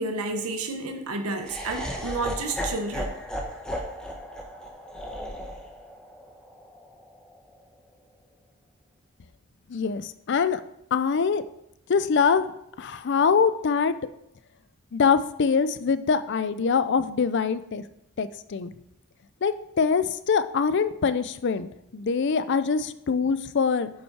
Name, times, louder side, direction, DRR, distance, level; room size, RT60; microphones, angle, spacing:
voice 1, 0.0-3.1, right 2 dB, 80° right, 5 dB, 1.1 m, -30 dB
Laughter, 1.4-7.6, equal, 5° left, 0.9 m, -35 dB
voice 2, 9.7-10.6 10.9-11.4 11.9-12.5 12.8-13.9 14.9-17.8 18.2-18.7 19.4-23.9, left 5 dB, 55° left, 14 dB, 0.4 m, -24 dB
7.7 x 5.4 x 4.7 m, 0.79 s
head